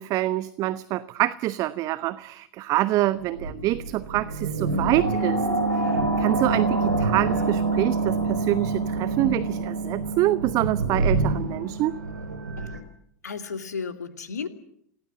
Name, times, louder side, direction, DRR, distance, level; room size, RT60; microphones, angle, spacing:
voice 1, 0.0-5.4 6.2-11.9, right 15 dB, 40° right, 14 dB, 1.0 m, -26 dB
sound 1, 3.2-12.8, right 3 dB, 90° right, 4.8 m, -26 dB
voice 2, 13.2-14.5, left 5 dB, 75° left, 7 dB, 2.6 m, -33 dB
28.0 x 17.5 x 7.6 m, 0.69 s
figure-of-eight pair, 90°, 9 cm